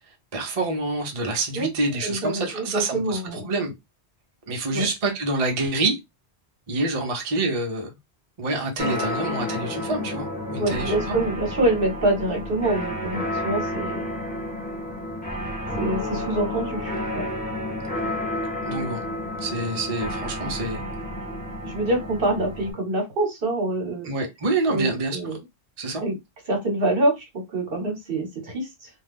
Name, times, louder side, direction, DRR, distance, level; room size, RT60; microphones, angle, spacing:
voice 1, 0.3-3.7 4.5-6.0 6.7-8.0 8.4-11.2 18.6-19.0 19.4-20.9 24.0-25.2 25.8-26.0, right 2 dB, 35° right, 0.7 m, -27 dB
voice 2, 2.0-3.5 4.7-4.9 10.6-14.1 15.8-17.3 21.6-24.1 24.7-25.4 26.0-26.2 26.5-28.9, right 2 dB, 60° right, 1.1 m, -26 dB
sound 1, 8.8-22.7, left 1 dB, 10° left, 1.0 m, -30 dB
2.5 x 2.2 x 3.4 m
omnidirectional pair, 1.1 m